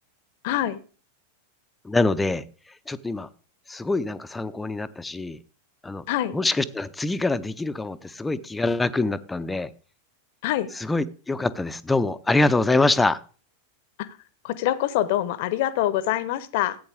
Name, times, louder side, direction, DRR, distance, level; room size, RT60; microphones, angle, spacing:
voice 1, 0.4-0.8 6.1-6.3 10.4-10.7 14.4-16.8, left 13 dB, 50° left, 0.9 m, -25 dB
voice 2, 1.8-3.3 3.7-5.4 5.8-6.0 6.3-9.7 10.7-13.2, left 2 dB, 10° left, 0.7 m, -25 dB
15.0 x 8.6 x 3.5 m
figure-of-eight pair, 90°, 0 cm